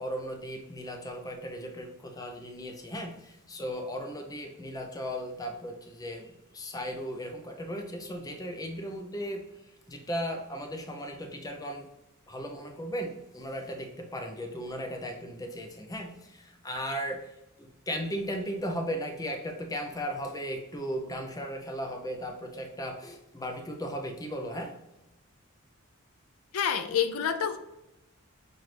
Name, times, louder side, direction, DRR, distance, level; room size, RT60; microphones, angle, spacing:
voice 1, 0.0-11.9 12.3-24.8, equal, 15° left, 3 dB, 0.5 m, -36 dB
voice 2, 26.5-27.6, left 8 dB, 75° left, 8 dB, 0.4 m, -27 dB
5.9 x 2.6 x 3.2 m, 0.92 s
head